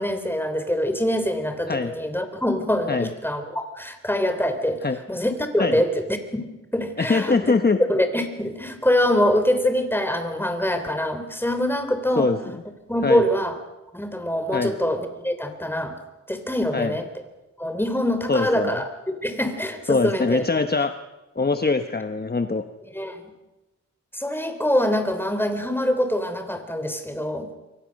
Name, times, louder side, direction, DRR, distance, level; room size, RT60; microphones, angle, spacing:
voice 1, 0.0-6.5 6.7-7.5 7.9-12.3 12.9-13.6 13.9-15.9 16.3-17.1 17.6-18.9 19.2-20.4 22.9-23.2 24.1-27.5, equal, 5° left, 7 dB, 3.3 m, -24 dB
voice 2, 7.0-7.8 12.2-12.6 13.0-13.2 14.5-14.7 16.7-16.9 18.3-18.8 19.9-20.9 21.4-22.6, left 4 dB, 35° left, 8 dB, 1.1 m, -23 dB
27.5 x 24.0 x 6.5 m, 1.1 s
wide cardioid pair, 85°, 29 cm